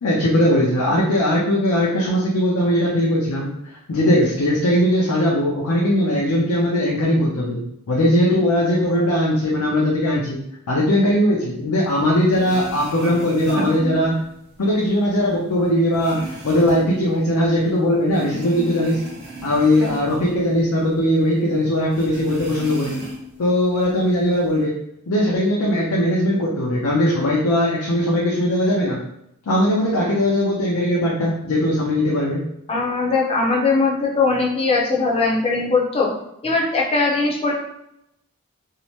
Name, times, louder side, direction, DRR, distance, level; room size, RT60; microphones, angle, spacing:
voice 1, 0.0-3.5 3.9-7.6 7.9-10.4 10.7-14.2 14.6-19.0 19.4-23.0 23.4-24.7 25.1-29.0 29.5-32.4, left 1 dB, 85° left, -4 dB, 0.5 m, -19 dB
sound 1, 12.0-12.1 12.3-14.5 14.9-17.8 18.1-21.1 21.4-21.5 21.9-23.4 23.8-24.6, right 1 dB, 55° right, 0.8 m, -34 dB
voice 2, 32.7-36.1 36.4-37.5, left 3 dB, 25° left, -2 dB, 0.5 m, -20 dB
2.7 x 2.1 x 3.0 m, 0.78 s
head